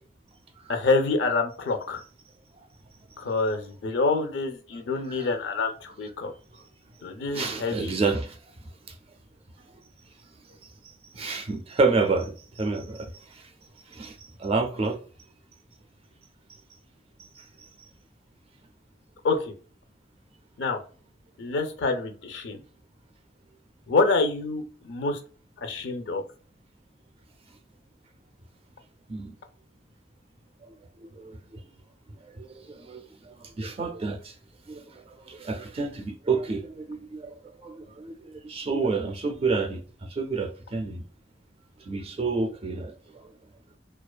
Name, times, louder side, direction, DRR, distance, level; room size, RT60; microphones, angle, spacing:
voice 1, 0.7-2.0 3.2-6.3 7.0-7.9 19.2-19.5 20.6-20.8 21.4-22.6 23.9-25.2 25.6-26.2, left 3 dB, 75° left, 0.5 m, -26 dB
voice 2, 7.3-8.4 8.9-9.0 11.1-13.5 13.9-15.0 17.4-17.5 29.1-29.3 31.1-31.4 32.4-33.0 33.4-34.3 34.7-39.8 40.1-41.0 41.9-43.0, right 4 dB, 30° right, 0.3 m, -29 dB
2.4 x 2.3 x 2.2 m
head